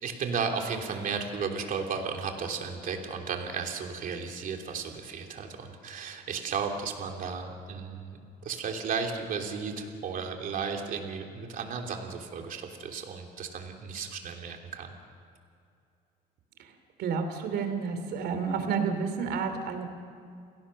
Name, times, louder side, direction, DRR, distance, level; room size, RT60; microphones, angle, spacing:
voice 1, 0.0-14.9, right 5 dB, 55° right, 3 dB, 3.0 m, -34 dB
voice 2, 17.0-19.9, right 5 dB, 75° right, 8 dB, 2.9 m, -30 dB
29.5 x 17.0 x 6.5 m, 2.5 s
cardioid pair, 110°, 17 cm